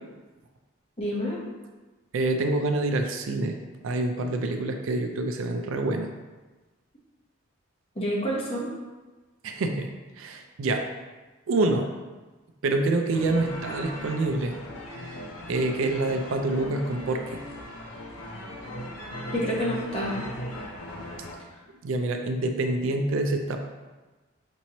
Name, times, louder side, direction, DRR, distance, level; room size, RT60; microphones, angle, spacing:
voice 1, 1.0-1.4 8.0-8.7 19.3-20.1, equal, 30° left, -5 dB, 0.9 m, -28 dB
voice 2, 2.1-3.6 3.8-6.1 9.4-9.9 10.2-10.8 11.5-11.9 12.6-14.5 14.9-15.2 15.5-17.4 21.8-23.6, right 2 dB, 70° right, 5 dB, 0.4 m, -26 dB
sound 1, 13.1-21.3, left 1 dB, 90° left, 0.7 m, -38 dB
5.2 x 3.0 x 2.8 m, 1.2 s
head